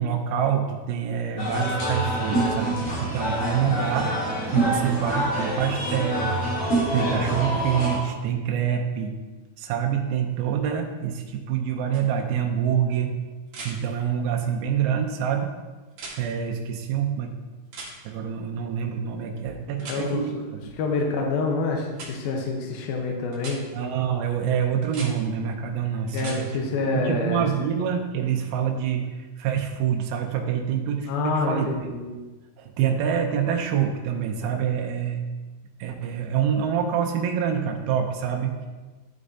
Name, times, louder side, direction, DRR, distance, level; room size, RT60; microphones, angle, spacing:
voice 1, 0.0-4.1 4.5-9.1 9.6-13.2 13.6-15.5 16.1-17.3 18.0-20.4 23.7-32.0 32.6-35.3 35.8-38.7, right 8 dB, 80° right, 3 dB, 2.5 m, -26 dB
sound 1, 1.4-8.0, right 1 dB, 55° left, 4.2 m, -26 dB
sound 2, 11.9-12.0 13.5-13.7 15.9-16.2 17.7-17.9 19.8-20.0 21.9-22.1 23.3-23.6 24.8-25.1 26.1-26.4 28.4-28.5, right 3 dB, 50° right, 2.6 m, -38 dB
voice 2, 19.8-20.4 20.8-23.6 26.1-27.4 31.1-32.2, left 3 dB, 75° left, 1 dB, 2.6 m, -27 dB
11.5 x 6.6 x 2.7 m, 1.3 s
omnidirectional pair, 4.5 m